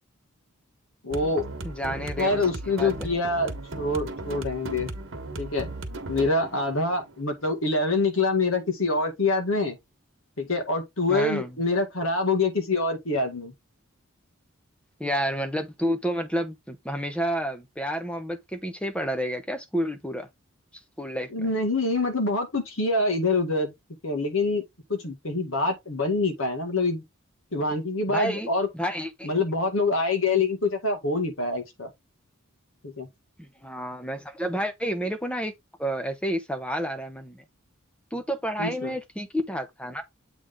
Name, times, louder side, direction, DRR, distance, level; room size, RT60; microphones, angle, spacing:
voice 1, 1.0-1.5 2.2-4.9 5.4-5.7 6.1-9.8 10.4-13.5 21.3-23.7 24.0-24.6 24.9-27.0 27.5-28.7 29.2-31.9 32.8-33.1 38.6-38.9, left 3 dB, 75° left, 1.9 m, -25 dB
sound 1, 1.1-8.1, right 2 dB, 65° right, 1.4 m, -37 dB
voice 2, 1.6-2.5 2.8-3.1 11.1-11.6 15.0-20.3 21.0-21.3 28.1-29.3 33.4-35.5 35.8-37.4 38.1-40.0, equal, 5° left, 0.9 m, -30 dB
8.0 x 3.6 x 3.7 m
head